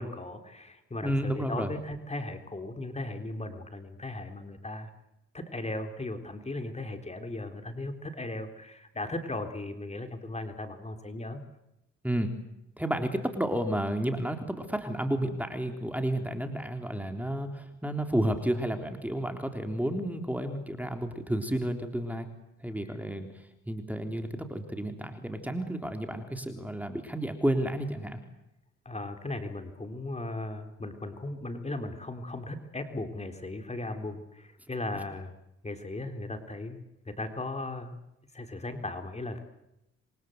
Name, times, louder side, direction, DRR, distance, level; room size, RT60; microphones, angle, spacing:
voice 1, 0.0-4.9 5.3-11.4 28.9-35.3 35.6-38.0 38.3-39.4, left 2 dB, 20° left, 7 dB, 3.8 m, -37 dB
voice 2, 1.0-1.7 12.0-12.4 12.8-22.3 22.6-23.3 23.7-28.2 34.9-35.0, right 1 dB, 5° right, 6 dB, 3.6 m, -31 dB
28.0 x 23.5 x 8.1 m, 0.88 s
cardioid pair, 90°, 30 cm